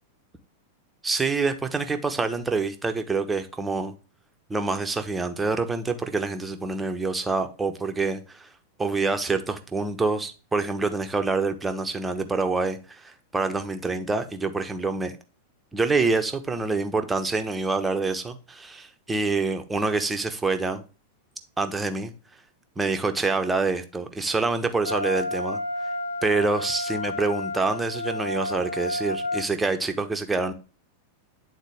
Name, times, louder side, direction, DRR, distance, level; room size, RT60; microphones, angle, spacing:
voice 1, 1.0-3.9 4.5-8.5 8.8-15.1 15.7-20.8 21.6-22.1 22.8-25.6 26.2-30.5, right 3 dB, 10° right, 1.0 m, -26 dB
Wind instrument woodwind instrument, 24.8-29.4, left 2 dB, 75° left, 1.0 m, -30 dB
9.4 x 4.0 x 3.4 m
figure-of-eight pair, 90°, 0 cm